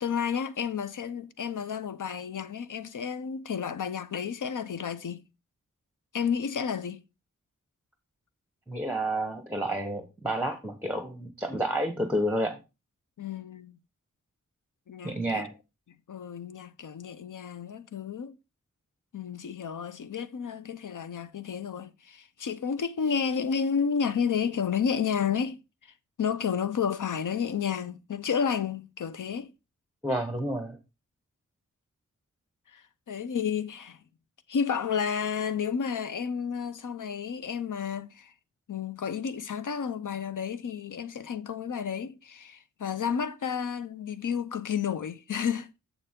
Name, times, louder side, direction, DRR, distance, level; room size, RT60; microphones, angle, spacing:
voice 1, 0.0-5.2 6.1-7.0 13.2-13.8 14.9-15.5 16.1-18.3 19.1-25.6 26.2-29.5 32.7-32.8 33.1-34.0 34.5-38.3 38.7-45.7, left 7 dB, 75° left, 0.7 m, -31 dB
voice 2, 8.7-12.6 15.0-15.5 30.0-30.8, right 1 dB, 5° right, 1.0 m, -30 dB
7.1 x 6.8 x 3.6 m
wide cardioid pair, 110°, 31 cm